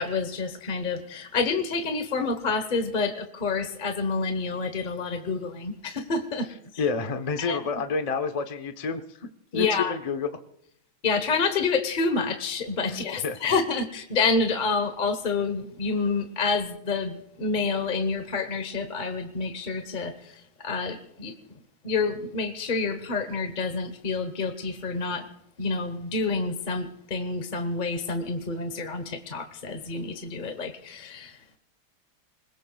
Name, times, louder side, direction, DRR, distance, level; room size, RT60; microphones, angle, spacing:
voice 1, 0.0-6.8 7.4-7.6 9.5-9.9 11.0-21.3 21.8-25.3 25.6-31.6, left 4 dB, 35° left, 8 dB, 0.8 m, -28 dB
voice 2, 6.8-10.4 12.9-13.5, left 5 dB, 55° left, 7 dB, 0.4 m, -30 dB
27.0 x 20.5 x 2.3 m, 0.73 s
omnidirectional pair, 2.2 m